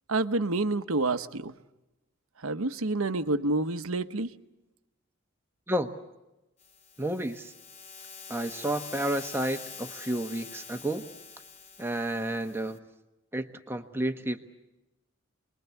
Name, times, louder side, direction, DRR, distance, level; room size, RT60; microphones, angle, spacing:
voice 1, 0.1-1.5 2.4-4.3, right 2 dB, 80° right, 11 dB, 1.1 m, -28 dB
sound 1, 6.6-12.8, left 5 dB, 30° left, 2.0 m, -45 dB
voice 2, 7.0-7.5 8.3-11.1 11.8-12.8 13.3-14.5, right 1 dB, 10° right, 6 dB, 1.2 m, -31 dB
28.5 x 21.5 x 8.3 m, 0.98 s
head